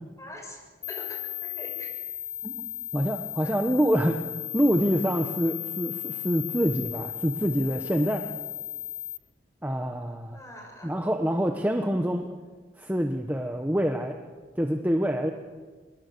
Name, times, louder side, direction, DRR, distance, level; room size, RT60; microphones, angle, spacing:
voice 1, 0.2-0.6 0.9-1.9 3.4-3.5 10.3-10.9, left 1 dB, 15° left, 2 dB, 6.2 m, -43 dB
sound 1, 0.8-9.2, left 14 dB, 40° left, 0.9 m, -35 dB
voice 2, 2.4-4.2 4.5-8.2 9.6-10.4 10.8-12.3 12.8-14.2 14.6-15.3, equal, 10° right, 4 dB, 1.1 m, -26 dB
25.0 x 22.5 x 6.8 m, 1.4 s
head